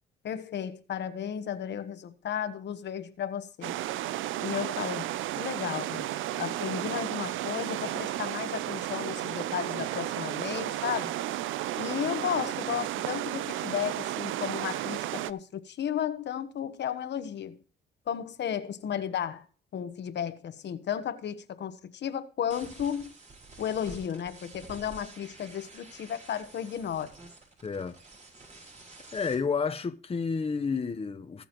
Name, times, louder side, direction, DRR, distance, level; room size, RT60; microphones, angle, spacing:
voice 1, 0.2-3.8 4.4-6.1 6.4-11.1 11.8-17.6 18.1-19.4 19.7-23.1 23.6-27.1, left 9 dB, 60° left, 1.2 m, -34 dB
sound 1, 3.6-15.3, right 14 dB, 80° right, 0.6 m, -33 dB
sound 2, 22.5-29.3, right 3 dB, 35° right, 5.4 m, -49 dB
voice 2, 27.6-28.0 29.1-31.4, left 5 dB, 30° left, 1.0 m, -30 dB
20.5 x 7.2 x 3.1 m
cardioid pair, 90°, 20 cm